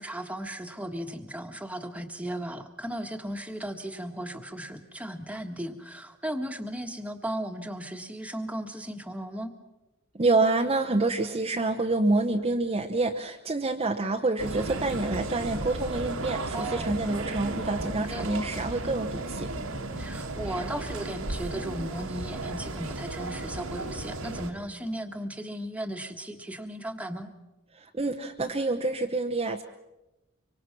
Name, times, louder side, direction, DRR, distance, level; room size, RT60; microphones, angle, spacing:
voice 1, 0.0-9.5 16.5-17.0 18.1-18.3 20.0-27.3, right 1 dB, 5° right, 5 dB, 1.6 m, -36 dB
voice 2, 10.1-19.5 27.7-29.6, right 2 dB, 30° right, 3 dB, 0.9 m, -27 dB
sound 1, 14.4-24.5, right 2 dB, 80° right, 2.0 m, -34 dB
25.0 x 24.5 x 6.0 m, 1.0 s
head